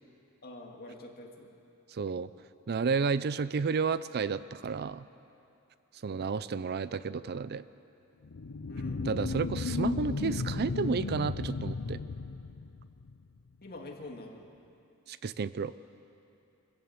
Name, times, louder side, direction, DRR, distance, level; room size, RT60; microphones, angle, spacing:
voice 1, 0.4-1.5 8.7-9.1 13.6-14.5, left 2 dB, 45° left, 0 dB, 2.4 m, -45 dB
voice 2, 1.9-2.3 2.7-5.0 6.0-7.6 9.1-12.0 15.1-15.7, right 5 dB, 50° right, 15 dB, 0.4 m, -31 dB
sound 1, 8.2-13.2, left 4 dB, 75° left, 0.6 m, -35 dB
24.5 x 14.5 x 8.2 m, 2.7 s
head